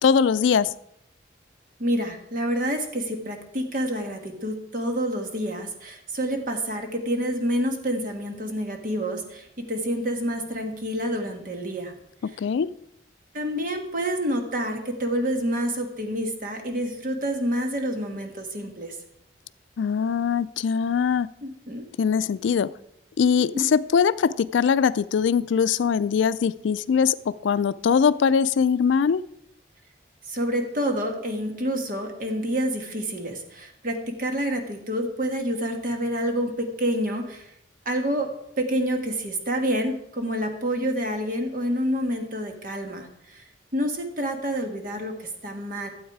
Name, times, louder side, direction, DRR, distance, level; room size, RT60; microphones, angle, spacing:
voice 1, 0.0-0.7 12.2-12.7 19.8-21.3 22.0-22.7 23.2-29.2, left 6 dB, 80° left, 17 dB, 0.4 m, -22 dB
voice 2, 1.8-11.9 13.3-19.0 21.4-21.9 23.4-23.7 30.3-37.5 37.8-43.4 43.7-45.9, equal, 45° right, 4 dB, 1.5 m, -28 dB
12.5 x 8.0 x 4.7 m, 0.78 s
head